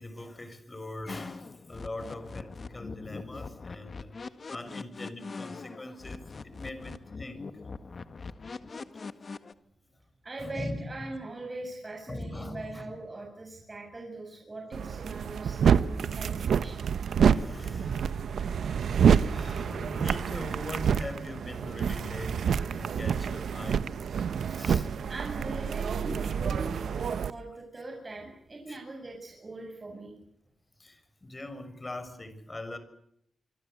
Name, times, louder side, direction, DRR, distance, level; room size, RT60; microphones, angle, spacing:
voice 1, 0.0-7.5 10.4-11.2 12.1-12.9 17.3-18.2 18.7-23.9 24.5-24.9 28.7-28.8 30.8-32.8, left 1 dB, 25° left, 11 dB, 6.4 m, -41 dB
sound 1, 1.1-9.5, left 4 dB, 50° left, 1.8 m, -42 dB
voice 2, 10.2-16.9 25.1-30.1, right 2 dB, 35° right, 2 dB, 7.7 m, -41 dB
sound 2, 14.7-27.3, right 7 dB, 85° right, 1.1 m, -27 dB
27.0 x 25.0 x 8.2 m, 0.71 s
cardioid pair, 75°, 0 cm